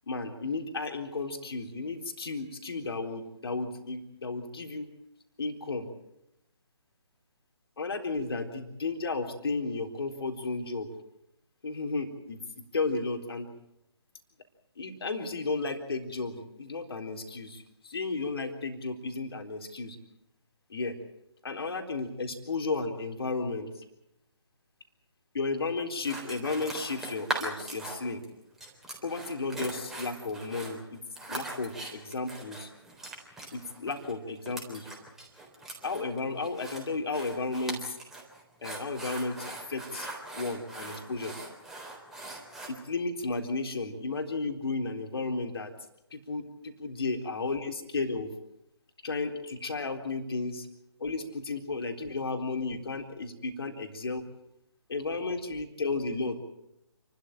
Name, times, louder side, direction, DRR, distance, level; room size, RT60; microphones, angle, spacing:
voice 1, 0.1-4.9 5.4-5.9 7.8-10.9 11.6-12.4 12.7-13.5 14.8-20.0 20.7-21.0 21.4-23.7 25.3-28.2 29.0-31.0 31.3-32.7 33.5-34.9 35.8-38.0 38.6-40.1 40.3-41.3 42.7-45.7 46.1-48.3 49.0-50.7 51.0-54.2 54.9-56.4, left 3 dB, 60° left, 5 dB, 3.8 m, -33 dB
sound 1, 26.0-28.2 28.6-42.7, right 2 dB, 5° right, 3.7 m, -40 dB
29.0 x 13.0 x 8.9 m, 0.85 s
figure-of-eight pair, 145°, 15 cm